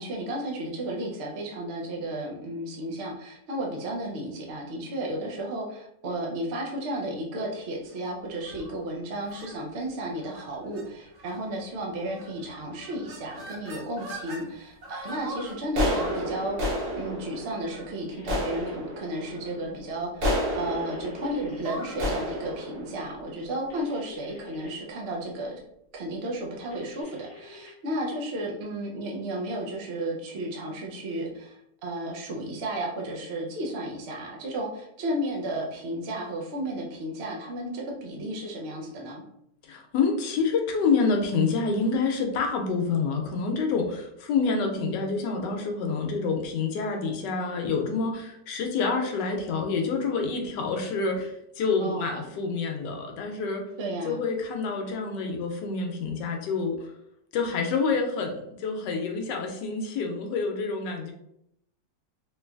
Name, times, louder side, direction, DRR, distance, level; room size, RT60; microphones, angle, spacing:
voice 1, 0.0-25.6 25.9-39.2 51.8-52.2 53.8-54.2, right 1 dB, 90° right, -1 dB, 0.5 m, -33 dB
sound 1, 8.4-8.7 9.3-9.5 10.2-10.4 10.7-10.8 11.2-11.6 12.1-12.5 12.7-14.4 14.8-24.0, equal, 55° right, 1.1 m, -33 dB
sound 2, 18.1-18.7 20.7-21.7 23.7-24.7 26.7-27.7, left 3 dB, 45° left, 0.8 m, -49 dB
voice 2, 39.6-53.6 54.0-56.9 57.3-61.1, left 4 dB, 80° left, 3 dB, 1.2 m, -27 dB
3.1 x 3.1 x 2.3 m, 0.77 s
omnidirectional pair, 1.9 m